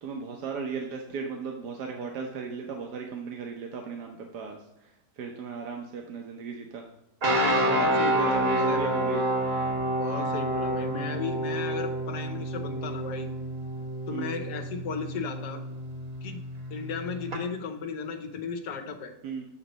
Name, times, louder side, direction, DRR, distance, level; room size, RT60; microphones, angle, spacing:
voice 1, 0.0-6.8 7.5-9.2 14.1-14.4 19.2-19.5, right 5 dB, 80° right, 2 dB, 1.4 m, -36 dB
sound 1, 7.2-17.4, right 1 dB, 45° right, 1.0 m, -29 dB
voice 2, 7.3-8.8 10.0-13.3 14.1-15.6 16.2-16.4 16.7-19.1, left 5 dB, 85° left, 5 dB, 1.4 m, -35 dB
8.3 x 3.0 x 6.4 m, 0.88 s
omnidirectional pair, 1.7 m